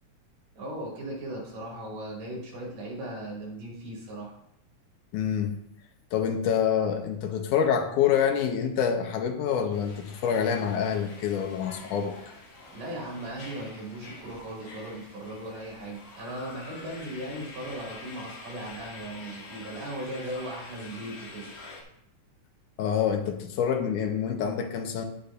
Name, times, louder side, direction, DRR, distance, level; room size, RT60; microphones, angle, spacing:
voice 1, 0.5-4.3 12.7-21.5, right 1 dB, 70° right, -2 dB, 4.1 m, -38 dB
voice 2, 5.1-5.6 6.1-12.1 22.8-25.1, left 8 dB, 75° left, 5 dB, 2.4 m, -26 dB
sound 1, 9.7-21.8, left 2 dB, 55° left, 2.6 m, -46 dB
10.0 x 10.0 x 2.6 m, 0.75 s
omnidirectional pair, 3.8 m